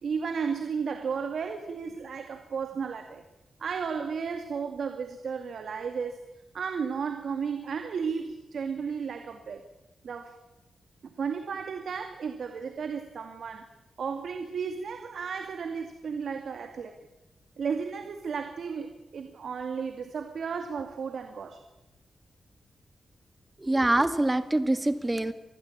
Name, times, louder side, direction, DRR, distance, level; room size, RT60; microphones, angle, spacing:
voice 1, 0.0-3.2 3.6-6.3 6.5-9.7 10.0-10.4 11.0-13.7 14.0-17.0 17.6-21.6, right 6 dB, 70° right, 2.3 m, -34 dB
voice 2, 23.6-25.3, right 1 dB, 15° right, 1.9 m, -25 dB
27.0 x 20.0 x 8.7 m
wide cardioid pair, 135°, 0 cm